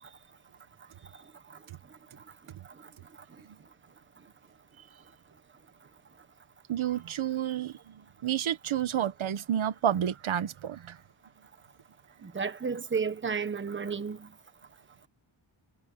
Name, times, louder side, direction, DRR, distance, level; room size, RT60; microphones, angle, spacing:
voice 1, 6.7-11.0, right 10 dB, 80° right, 1.6 m, -30 dB
voice 2, 12.2-14.3, right 5 dB, 25° right, 1.3 m, -32 dB
wide cardioid pair, 160°, 47 cm